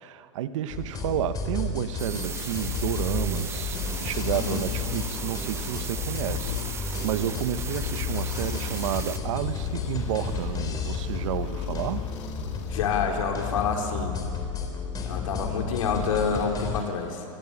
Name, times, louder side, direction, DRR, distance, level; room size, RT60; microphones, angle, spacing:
voice 1, 0.0-12.0, right 12 dB, 70° right, 12 dB, 1.2 m, -31 dB
sound 1, 0.7-16.8, left 5 dB, 20° left, 4.0 m, -32 dB
sound 2, 2.0-9.2, right 6 dB, 15° right, 0.9 m, -37 dB
sound 3, 3.7-12.7, left 8 dB, 65° left, 3.4 m, -42 dB
voice 2, 4.3-4.6 12.7-14.1 15.1-17.2, left 6 dB, 80° left, 2 dB, 4.8 m, -28 dB
28.0 x 19.5 x 8.6 m, 2.4 s
supercardioid pair, 140°, 17 cm